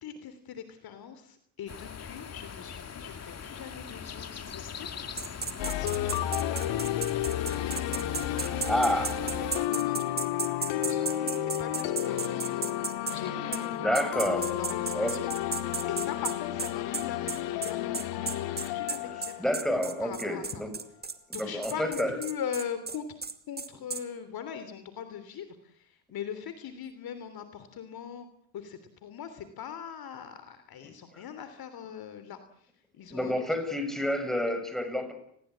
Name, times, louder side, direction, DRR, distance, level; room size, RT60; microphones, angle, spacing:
voice 1, 0.0-12.4 13.1-15.2 15.8-19.4 20.0-20.6 21.3-23.2 23.5-28.3 28.5-32.4 32.9-33.5, left 8 dB, 50° left, 11 dB, 3.3 m, -41 dB
sound 1, 1.7-9.7, left 7 dB, 35° left, 2.3 m, -42 dB
sound 2, 5.2-13.2 13.5-13.6 13.9-24.0, right 4 dB, 20° right, 2.2 m, -35 dB
sound 3, 5.6-20.4, left 12 dB, 70° left, 2.6 m, -32 dB
voice 2, 8.4-9.2 10.7-10.8 13.8-14.5 14.9-15.2 19.4-20.7 21.3-22.2 30.8-30.9 33.1-35.1, left 1 dB, ahead, 7 dB, 7.5 m, -29 dB
30.0 x 21.0 x 8.7 m, 0.71 s
supercardioid pair, 90°, 46 cm